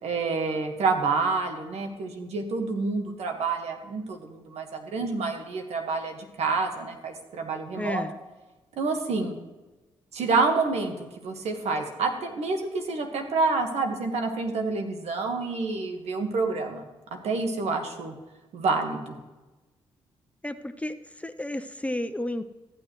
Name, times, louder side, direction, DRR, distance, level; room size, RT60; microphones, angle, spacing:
voice 1, 0.0-8.0 8.8-9.3 10.1-10.9 11.2-16.8 17.2-18.1 18.5-19.2, right 4 dB, 75° right, 4 dB, 1.6 m, -28 dB
voice 2, 7.8-8.1 20.4-22.5, left 1 dB, 10° left, 11 dB, 0.6 m, -32 dB
14.5 x 9.5 x 3.2 m, 1.1 s
supercardioid pair, 50°, 11 cm